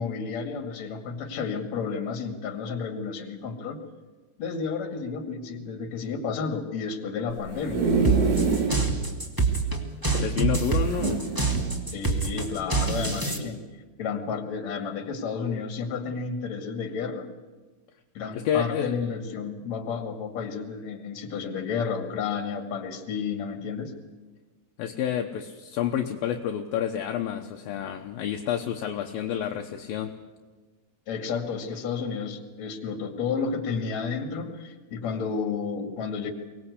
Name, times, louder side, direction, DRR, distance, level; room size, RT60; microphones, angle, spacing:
voice 1, 0.0-3.8 4.4-7.9 11.9-13.6 14.0-17.3 18.1-23.9 31.1-36.3, left 5 dB, 45° left, 7 dB, 3.1 m, -31 dB
sound 1, 7.3-8.8 9.3-9.4 9.6-9.7 10.8-11.7 12.4-12.6, right 4 dB, 90° right, 5.5 m, -26 dB
sound 2, 8.0-13.4, right 4 dB, 15° right, 0.8 m, -26 dB
voice 2, 10.0-11.2 18.3-18.9 24.8-30.2, left 9 dB, 70° left, 4 dB, 2.5 m, -29 dB
24.0 x 19.5 x 8.3 m, 1.3 s
omnidirectional pair, 4.8 m